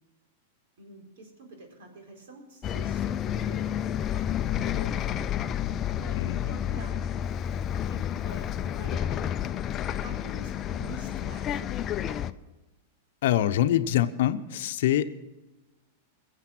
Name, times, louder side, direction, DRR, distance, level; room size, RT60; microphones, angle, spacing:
voice 1, 0.8-4.0 4.6-5.2 6.0-7.0 7.8-9.3 9.9-12.2, right 2 dB, 70° right, 2 dB, 4.3 m, -47 dB
Bus, 2.6-12.3, left 10 dB, 30° left, 0.6 m, -30 dB
voice 2, 13.2-15.0, left 12 dB, 65° left, 10 dB, 0.8 m, -24 dB
21.5 x 7.7 x 6.1 m, 1.1 s
hypercardioid pair, 110°, 0 cm